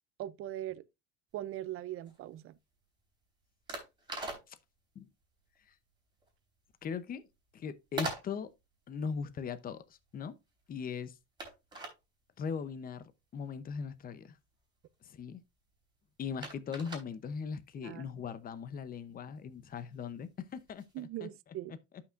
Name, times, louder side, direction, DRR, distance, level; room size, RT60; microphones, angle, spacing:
voice 1, 0.2-0.8 1.3-2.6 17.8-18.0 20.9-21.7, right 13 dB, 40° right, 0.6 m, -40 dB
sound 1, 1.3-21.0, right 2 dB, 15° right, 3.5 m, -47 dB
voice 2, 6.8-7.3 7.5-8.5 8.9-10.4 10.7-11.2 12.4-14.4 15.0-15.4 16.2-21.3 21.7-21.8, left 6 dB, 25° left, 0.7 m, -39 dB
12.0 x 5.9 x 2.5 m
cardioid pair, 135°, 32 cm